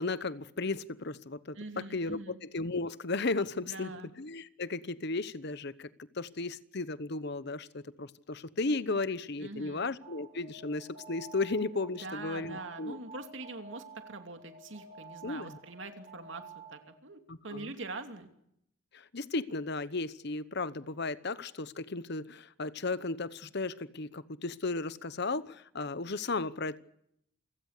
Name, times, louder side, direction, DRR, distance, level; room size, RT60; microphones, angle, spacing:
voice 1, 0.0-3.9 4.2-5.9 6.2-13.0 15.2-15.6 17.3-17.7 18.9-26.8, left 3 dB, 55° left, 15 dB, 1.0 m, -35 dB
voice 2, 1.5-2.4 3.6-4.1 9.4-9.9 12.0-16.4 16.7-18.3, right 2 dB, 65° right, 6 dB, 2.9 m, -43 dB
Alarm, 10.0-17.1, right 4 dB, 35° right, 6.0 m, -51 dB
28.0 x 17.0 x 6.7 m, 0.75 s
head